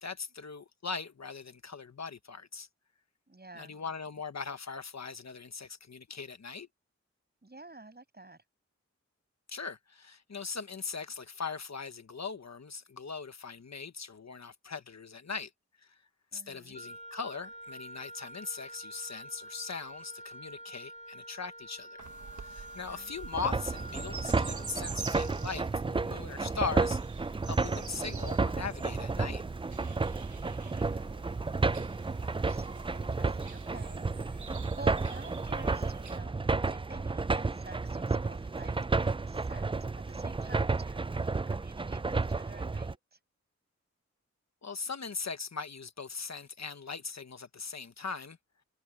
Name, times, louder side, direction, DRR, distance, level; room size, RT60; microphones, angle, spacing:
voice 1, 0.0-2.7 3.6-6.7 9.5-15.5 16.3-22.1 22.4-29.4 44.6-48.4, left 5 dB, 65° left, 1.2 m, -40 dB
voice 2, 3.3-3.8 7.4-8.4 16.3-16.8 22.7-23.1 30.6-31.2 32.2-34.5 34.8-36.3 36.7-39.7 40.1-43.2, right 2 dB, 35° right, 6.3 m, -51 dB
Wind instrument woodwind instrument, 16.7-25.6, right 1 dB, 25° left, 2.2 m, -47 dB
sound 1, 22.0-36.2, right 6 dB, 80° right, 1.2 m, -48 dB
sound 2, 23.3-42.9, right 3 dB, 20° right, 0.4 m, -32 dB
wide cardioid pair, 80°, 29 cm